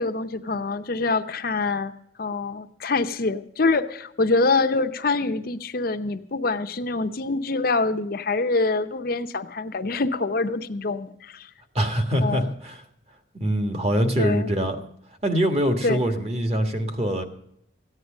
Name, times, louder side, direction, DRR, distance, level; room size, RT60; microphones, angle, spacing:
voice 1, 0.0-1.9 2.2-11.5 12.2-12.5 14.2-14.5 15.8-16.0, left 3 dB, 50° left, 9 dB, 0.7 m, -25 dB
voice 2, 11.7-12.8 13.4-14.8 15.2-17.2, equal, 35° right, 6 dB, 1.6 m, -23 dB
15.0 x 9.5 x 6.4 m, 0.73 s
head